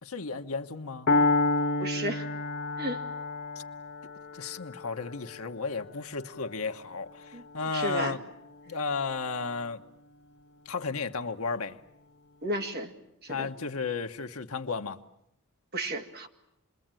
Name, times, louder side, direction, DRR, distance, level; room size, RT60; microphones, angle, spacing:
voice 1, 0.0-1.1 4.3-8.2 8.7-9.8 10.6-11.8 13.3-15.0, left 4 dB, 75° left, 1.2 m, -33 dB
Piano, 1.1-9.0, left 2 dB, 50° left, 1.3 m, -31 dB
voice 2, 1.8-2.3 2.8-3.0 7.3-7.4 7.7-8.2 12.4-12.9 13.2-13.5 15.7-16.3, right 1 dB, 45° right, 2.1 m, -33 dB
28.0 x 21.5 x 9.0 m
head